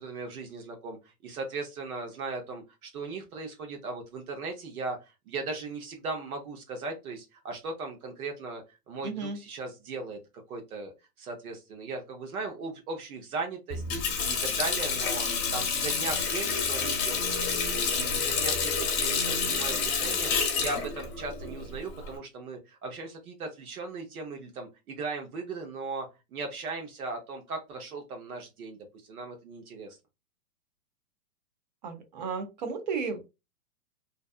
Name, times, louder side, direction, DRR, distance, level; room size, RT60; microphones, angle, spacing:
voice 1, 0.0-10.2 10.5-10.9 11.2-17.3 17.7-30.0, right 3 dB, 70° right, 3 dB, 0.9 m, -38 dB
voice 2, 9.0-9.4 31.8-33.2, right 5 dB, 30° right, 7 dB, 0.4 m, -33 dB
Water tap faucet, 13.7-22.2, left 5 dB, 30° left, 1.0 m, -29 dB
2.6 x 2.1 x 2.4 m, 0.26 s
hypercardioid pair, 135°, 45 cm